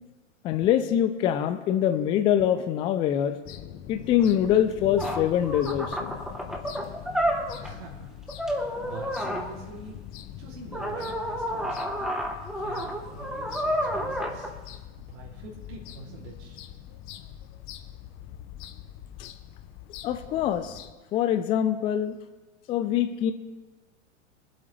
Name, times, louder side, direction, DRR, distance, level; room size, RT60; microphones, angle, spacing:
voice 1, 0.4-3.4 3.9-6.2 19.2-19.3 20.0-20.8 21.1-22.1 22.7-23.3, left 10 dB, 15° left, 9 dB, 0.3 m, -24 dB
sound 1, 3.4-20.9, left 11 dB, 30° left, 0.7 m, -43 dB
sound 2, 4.7-4.8 5.0-7.8 8.3-9.5 10.7-14.5, equal, ahead, 1.0 m, -30 dB
voice 2, 7.6-8.1 8.4-10.0 10.4-11.9 12.5-14.5 14.9-16.6, right 3 dB, 60° right, -4 dB, 3.0 m, -44 dB
24.0 x 8.0 x 3.3 m, 1.2 s
hypercardioid pair, 100°, 39 cm